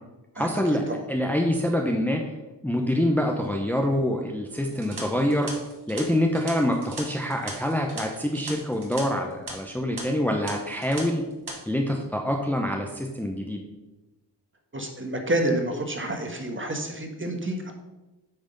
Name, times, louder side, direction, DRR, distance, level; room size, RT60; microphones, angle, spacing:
voice 1, 0.3-2.2 2.6-5.5 5.9-11.2 11.7-13.6, left 1 dB, 5° left, 2 dB, 0.9 m, -26 dB
sound 1, 4.7-9.0 9.3-9.5 10.0-10.1 10.5-11.0 11.3-11.5, right 3 dB, 55° right, 2.1 m, -38 dB
voice 2, 14.7-17.7, right 1 dB, 25° right, 4 dB, 1.5 m, -28 dB
8.9 x 3.5 x 5.3 m, 1.1 s
cardioid pair, 50°, 45 cm